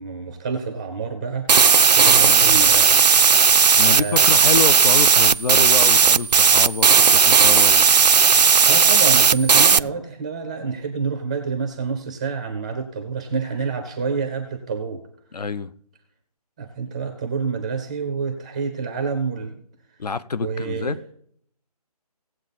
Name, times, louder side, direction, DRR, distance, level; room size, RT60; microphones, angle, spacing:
voice 1, 0.0-3.0 3.9-4.3 8.7-15.0 16.6-19.6 20.4-21.0, right 5 dB, 10° right, 0.5 m, -28 dB
sound 1, 1.5-9.8, right 6 dB, 85° right, 0.5 m, -15 dB
voice 2, 2.2-2.5 3.8-7.9 15.3-15.7 20.0-21.0, left 4 dB, 70° left, 0.8 m, -27 dB
17.0 x 7.7 x 4.1 m
figure-of-eight pair, 160°, 21 cm